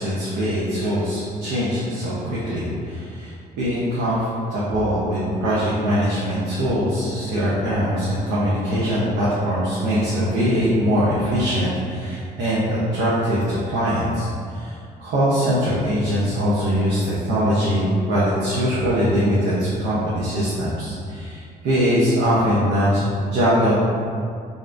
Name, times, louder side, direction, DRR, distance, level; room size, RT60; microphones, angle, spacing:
voice 1, 0.0-23.7, equal, 80° right, -9 dB, 0.7 m, -22 dB
3.2 x 2.6 x 2.5 m, 2.3 s
cardioid pair, 110°, 17 cm